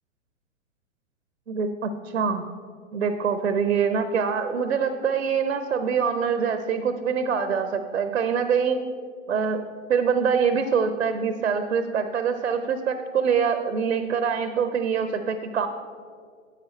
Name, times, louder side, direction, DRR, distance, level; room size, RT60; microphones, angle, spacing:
voice 1, 1.5-2.4 2.9-8.8 9.3-9.6 9.9-15.7, right 6 dB, 75° right, 9 dB, 0.7 m, -24 dB
10.0 x 8.1 x 4.3 m, 2.1 s
figure-of-eight pair, 110°, 39 cm